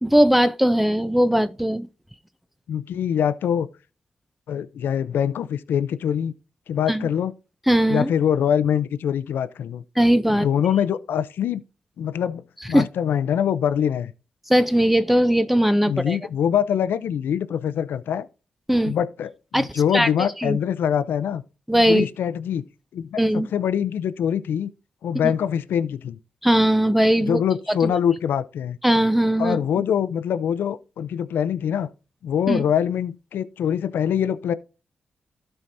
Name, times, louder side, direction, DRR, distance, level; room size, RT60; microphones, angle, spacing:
voice 1, 0.0-1.9 6.9-7.1 7.7-8.1 10.0-10.5 12.7-12.8 14.5-16.2 18.7-19.0 19.5-20.1 20.4-20.6 21.7-22.1 23.2-23.5 25.2-25.3 26.4-27.4 27.7-27.9 28.8-29.6 32.5-32.6, equal, 5° right, 0.6 m, -19 dB
voice 2, 2.7-3.7 4.5-6.3 6.7-7.3 7.9-9.8 10.3-11.6 12.0-12.4 12.7-14.1 15.9-18.3 18.8-21.4 21.9-22.6 22.9-24.7 25.0-26.2 27.3-28.8 29.4-31.9 32.2-34.5, left 8 dB, 85° left, 0.5 m, -24 dB
13.0 x 4.5 x 2.6 m
cardioid pair, 50°, 3 cm